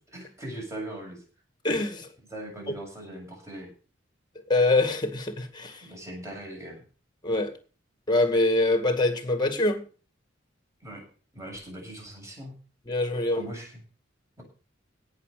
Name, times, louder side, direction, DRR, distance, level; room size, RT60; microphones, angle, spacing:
voice 1, 0.1-1.2 2.3-3.7 5.8-6.8 10.8-11.0 11.3-12.5 13.3-13.8, right 1 dB, 15° right, 7.6 m, -40 dB
voice 2, 1.6-2.1 4.5-5.9 7.2-7.5 8.1-9.8 12.9-13.5, left 2 dB, 25° left, 2.0 m, -24 dB
17.0 x 6.4 x 6.6 m
head